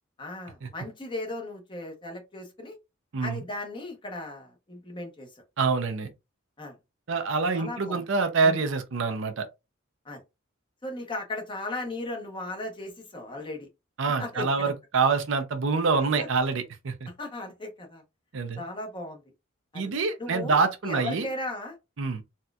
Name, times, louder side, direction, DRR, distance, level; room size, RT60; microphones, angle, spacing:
voice 1, 0.2-2.8 3.2-5.4 6.6-6.7 7.5-8.0 8.4-8.6 10.0-10.2 10.8-13.7 14.2-14.7 16.2-16.3 17.1-18.0 18.6-19.2 19.7-19.9 20.2-21.8, left 2 dB, 25° left, 0.9 m, -37 dB
voice 2, 5.6-6.1 7.1-9.5 14.0-17.1 18.3-18.6 19.7-21.3 22.0-22.2, right 4 dB, 65° right, 0.6 m, -26 dB
4.1 x 2.3 x 2.3 m
head